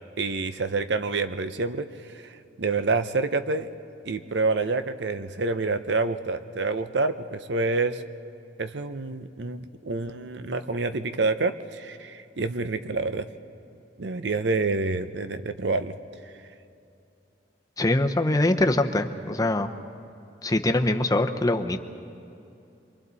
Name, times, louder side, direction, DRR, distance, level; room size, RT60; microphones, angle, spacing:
voice 1, 0.2-1.9 2.1-3.7 4.0-8.0 8.6-13.3 14.0-15.9, right 3 dB, 70° right, 10 dB, 0.8 m, -27 dB
voice 2, 17.8-19.7 20.4-21.8, left 1 dB, 20° left, 5 dB, 0.8 m, -23 dB
27.5 x 23.5 x 4.1 m, 2.7 s
head